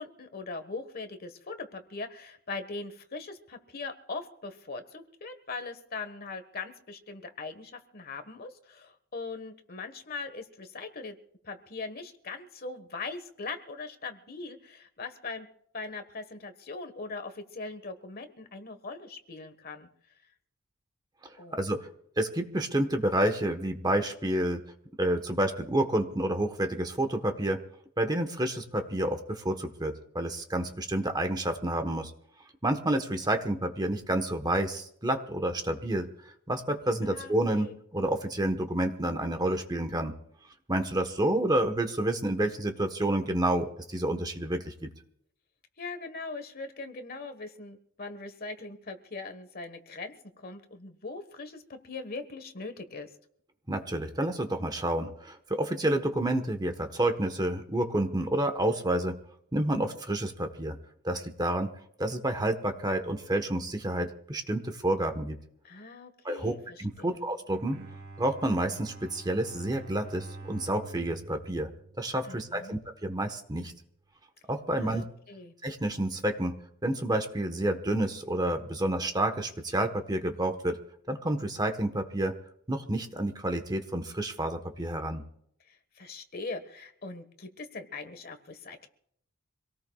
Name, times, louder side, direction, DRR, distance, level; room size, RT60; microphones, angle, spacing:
voice 1, 0.0-11.2 11.4-15.5 15.7-19.9 21.4-21.6 37.0-37.7 45.8-53.1 65.6-67.2 72.3-72.8 74.7-75.5 85.7-88.9, left 3 dB, 45° left, 8 dB, 1.4 m, -41 dB
voice 2, 21.2-21.9 22.2-24.6 25.0-27.6 28.0-32.1 32.6-36.1 36.5-40.1 40.7-44.9 53.7-59.2 59.5-60.8 61.0-61.7 62.0-65.4 66.2-66.5 66.8-67.8 68.2-71.7 72.0-73.7 74.5-75.0 75.6-80.8 81.1-82.4 82.7-85.2, right 1 dB, 20° right, 7 dB, 1.2 m, -29 dB
Bowed string instrument, 67.4-72.7, right 3 dB, 65° right, 2.1 m, -46 dB
26.0 x 18.0 x 2.4 m, 0.69 s
head